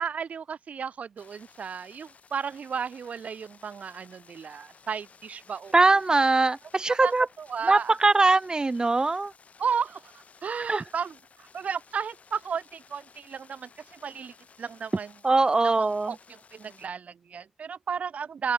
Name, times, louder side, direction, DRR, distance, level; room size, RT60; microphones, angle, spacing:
voice 1, 0.0-5.7 7.0-7.1 7.4-7.9 9.6-15.1 15.6-18.5, right 6 dB, 85° right, 0.5 m, -34 dB
sound 1, 1.2-16.9, left 5 dB, 75° left, 6.1 m, -56 dB
voice 2, 5.7-7.3 7.6-9.3 10.7-10.8 15.2-16.1, right 3 dB, 35° right, 0.3 m, -21 dB
open air
cardioid pair, 60°, 2 cm